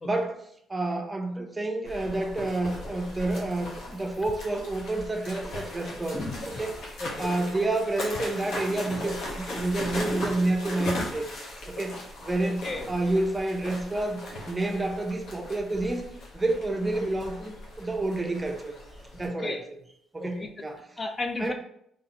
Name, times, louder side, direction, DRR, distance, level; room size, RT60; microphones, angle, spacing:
voice 1, 0.0-0.4 0.7-6.2 6.6-6.8 7.2-11.3 11.7-16.1 16.3-18.8 19.1-19.8 20.1-20.8 21.4-21.5, right 2 dB, 20° right, 3 dB, 0.6 m, -29 dB
sound 1, 1.8-19.3, left 1 dB, 75° left, 1.1 m, -38 dB
voice 2, 6.1-6.6 7.0-7.2 12.4-12.9 19.4-19.6 20.2-20.5 21.0-21.5, left 2 dB, 30° left, 5 dB, 0.4 m, -34 dB
4.0 x 3.0 x 2.8 m, 0.70 s
cardioid pair, 90°, 0 cm